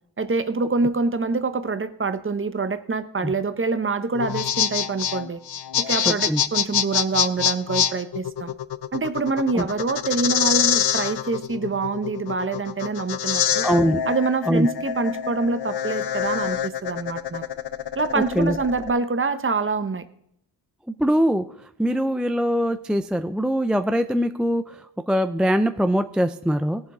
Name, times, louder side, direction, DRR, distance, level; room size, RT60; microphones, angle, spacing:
voice 1, 0.2-5.4 5.8-8.5 8.9-13.7 14.1-17.4 18.0-20.0, right 3 dB, 30° right, 12 dB, 0.8 m, -25 dB
sound 1, 4.1-18.9, left 9 dB, 70° left, 0.6 m, -25 dB
voice 2, 6.1-6.4 9.5-9.7 13.6-14.0 14.5-14.7 18.1-18.6 21.0-21.4 21.8-24.8 25.1-26.8, equal, ahead, 9 dB, 0.4 m, -22 dB
18.5 x 7.2 x 3.7 m, 0.75 s
wide cardioid pair, 120°, 41 cm